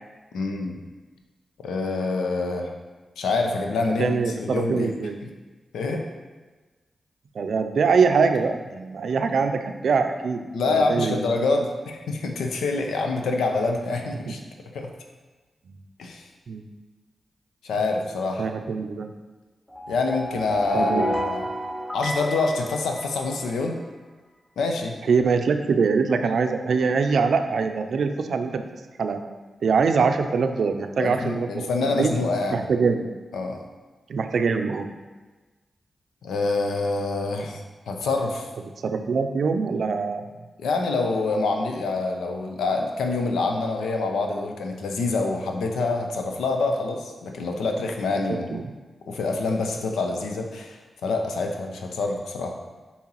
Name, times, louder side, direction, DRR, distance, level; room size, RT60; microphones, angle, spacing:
voice 1, 0.3-0.8 1.6-2.7 3.2-4.9 5.2-5.3 5.7-6.1 10.5-14.4 14.7-14.9 16.0-16.2 17.6-18.5 19.9-21.4 21.9-23.7 24.6-24.9 31.0-32.6 33.3-33.6 36.2-38.5 40.6-48.6 49.1-52.5, left 3 dB, 90° left, 3 dB, 0.6 m, -26 dB
voice 2, 4.0-5.2 7.3-11.2 14.3-14.4 15.7-15.8 16.5-16.7 18.4-19.1 20.7-21.1 25.0-28.6 29.0-29.2 29.6-32.1 32.5-33.1 34.1-34.9 38.8-40.3 48.5-48.6, right 5 dB, 75° right, 7 dB, 0.4 m, -23 dB
sound 1, 19.7-23.7, equal, 15° left, 1.5 m, -30 dB
7.3 x 4.3 x 3.0 m, 1.3 s
supercardioid pair, 40°, 0 cm